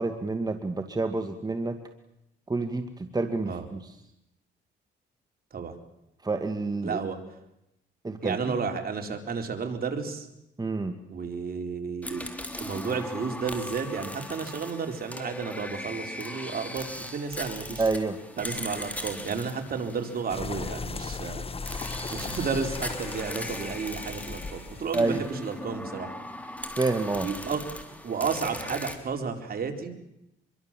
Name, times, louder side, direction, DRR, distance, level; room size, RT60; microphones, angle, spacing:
voice 1, 0.0-1.8 2.5-3.8 6.2-7.0 8.0-8.6 10.6-11.0 17.8-18.2 24.9-25.2 26.8-27.3, right 3 dB, 20° right, 7 dB, 1.9 m, -28 dB
voice 2, 6.8-7.2 8.2-10.3 11.1-12.3 12.6-17.8 18.4-21.5 22.1-26.1 27.1-27.6 28.0-30.0, right 5 dB, 50° right, 4 dB, 4.2 m, -32 dB
sound 1, 12.0-20.9 21.7-28.9, left 1 dB, 5° left, 3.7 m, -39 dB
Egg Drop Soup, 20.3-25.8, left 4 dB, 30° left, 1.6 m, -37 dB
26.0 x 23.0 x 7.6 m, 0.85 s
cardioid pair, 90°, 20 cm